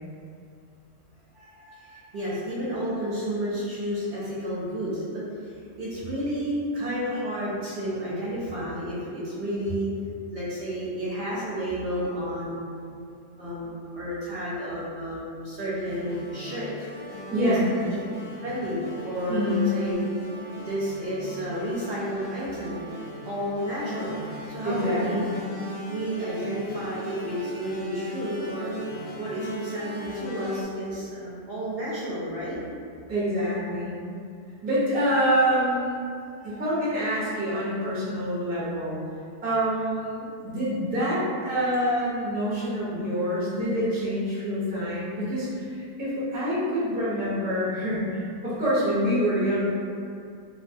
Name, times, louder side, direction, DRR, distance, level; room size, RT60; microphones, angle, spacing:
voice 1, 1.3-12.6 12.9-13.0 13.4-16.7 18.4-20.1 20.6-22.8 23.2-24.2 24.5-25.2 25.9-28.7 29.2-32.6 36.4-36.5, equal, 60° right, -8 dB, 0.7 m, -31 dB
sound 1, 15.8-30.6, left 1 dB, 60° left, 0.8 m, -38 dB
voice 2, 17.3-17.6 19.3-19.7 24.6-25.3 33.1-34.0 34.6-36.0 36.4-39.0 39.4-49.7, equal, 15° right, -10 dB, 0.3 m, -26 dB
2.7 x 2.2 x 2.6 m, 2.4 s
omnidirectional pair, 1.4 m